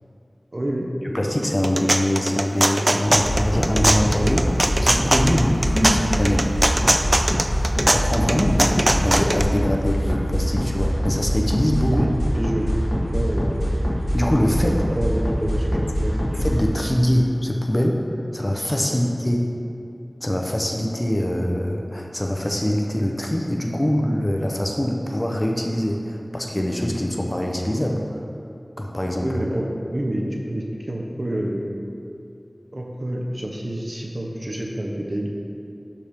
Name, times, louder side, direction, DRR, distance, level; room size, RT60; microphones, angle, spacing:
voice 1, 0.5-0.9 11.9-12.1 12.3-13.6 14.6-16.3 18.9-19.0 29.2-31.7 32.7-35.3, right 1 dB, 50° right, -1 dB, 0.9 m, -28 dB
voice 2, 1.1-4.5 4.8-6.5 7.9-12.1 14.1-14.7 15.7-15.8 16.3-18.0 18.3-19.5 20.2-28.2 28.8-29.3, equal, 30° left, 1 dB, 0.7 m, -23 dB
sound 1, 1.4-9.4, right 1 dB, 30° right, 0.3 m, -21 dB
sound 2, 3.1-16.6, equal, 65° left, 1.4 m, -24 dB
11.5 x 4.4 x 3.6 m, 2.6 s
wide cardioid pair, 50°, 0 cm